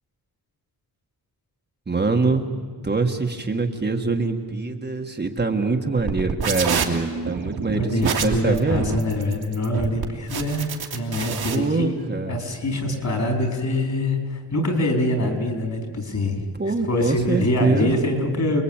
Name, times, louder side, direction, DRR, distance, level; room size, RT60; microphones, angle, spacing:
voice 1, 1.9-2.5 2.8-8.9 11.5-12.4 16.6-18.0, right 3 dB, 25° right, 3 dB, 1.6 m, -24 dB
sound 1, 6.0-11.5, right 6 dB, 75° right, 2.7 m, -27 dB
voice 2, 7.7-12.0 12.3-16.5 16.9-18.6, left 1 dB, 50° left, 4 dB, 4.5 m, -24 dB
28.0 x 21.5 x 8.9 m, 1.5 s
wide cardioid pair, 140°, 37 cm